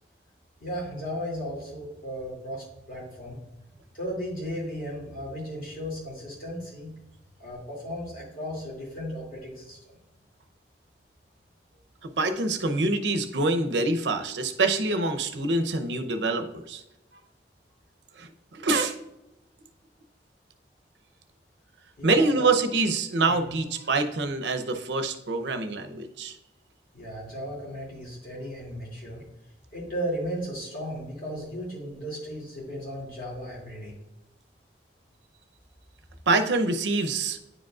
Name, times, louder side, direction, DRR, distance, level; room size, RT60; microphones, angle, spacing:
voice 1, 0.6-3.4 3.9-6.9 7.4-9.8 22.0-22.5 23.2-23.6 26.9-29.2 29.7-33.9, equal, 50° left, -4 dB, 2.5 m, -35 dB
voice 2, 12.0-16.8 18.2-19.0 22.0-26.4 36.3-37.4, right 3 dB, 85° right, 7 dB, 0.7 m, -25 dB
9.7 x 5.0 x 2.4 m, 0.92 s
head